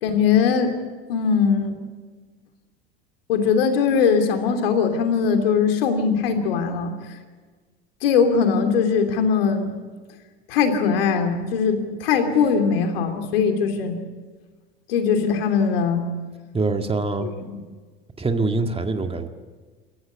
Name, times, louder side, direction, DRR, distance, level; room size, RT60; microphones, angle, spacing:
voice 1, 0.0-0.7 1.1-1.8 3.3-6.9 8.0-9.7 10.5-14.0 14.9-16.1 17.2-17.6, left 6 dB, 70° left, 6 dB, 3.0 m, -20 dB
voice 2, 16.5-17.3 18.2-19.3, right 3 dB, 20° right, 6 dB, 2.0 m, -24 dB
28.5 x 14.5 x 8.2 m, 1.4 s
figure-of-eight pair, 70°, 31 cm